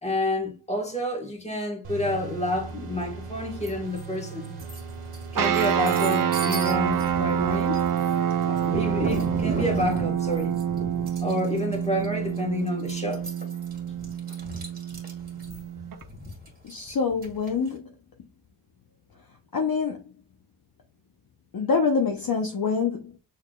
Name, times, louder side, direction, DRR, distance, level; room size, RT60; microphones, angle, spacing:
voice 1, 0.0-4.5 5.3-7.8 8.5-10.6 11.2-13.3, left 1 dB, 15° left, 1.4 m, -29 dB
sound 1, 1.8-9.9, right 4 dB, 75° right, 1.3 m, -39 dB
sound 2, 3.6-4.1 4.4-17.7, right 1 dB, 20° right, 1.8 m, -37 dB
sound 3, 5.3-16.0, right 9 dB, 45° right, 0.6 m, -27 dB
voice 2, 16.6-17.9 19.5-20.0 21.5-23.2, left 5 dB, 45° left, 0.8 m, -25 dB
6.4 x 3.6 x 2.3 m
wide cardioid pair, 105°, 49 cm